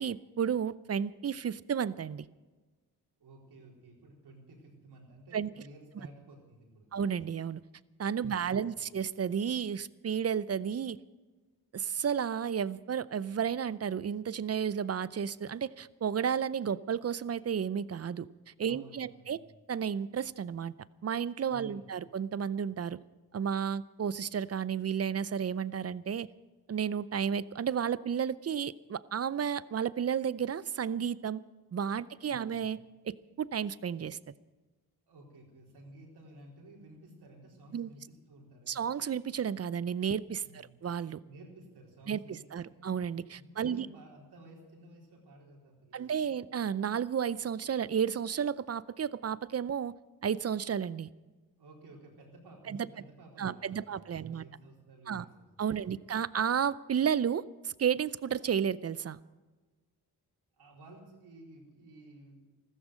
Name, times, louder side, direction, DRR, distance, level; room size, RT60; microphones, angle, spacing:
voice 1, 0.0-2.3 5.3-5.5 6.9-7.6 8.0-11.0 11.7-18.3 18.6-19.4 19.7-20.7 21.0-23.0 23.3-26.3 26.7-31.4 31.7-32.8 33.0-34.2 37.7-37.9 38.7-41.2 42.1-42.2 42.5-43.9 45.9-49.9 50.2-51.1 52.7-52.9 53.4-54.4 55.1-55.3 55.6-59.2, right 8 dB, 40° right, 18 dB, 0.6 m, -32 dB
voice 2, 3.2-6.9 8.2-8.9 18.6-19.5 21.5-22.0 32.3-32.7 35.1-38.9 40.4-40.8 41.3-42.9 43.4-46.3 51.6-56.1 60.6-62.6, right 1 dB, 80° right, -1 dB, 4.4 m, -54 dB
14.5 x 13.5 x 6.4 m, 1.2 s
cardioid pair, 75°, 39 cm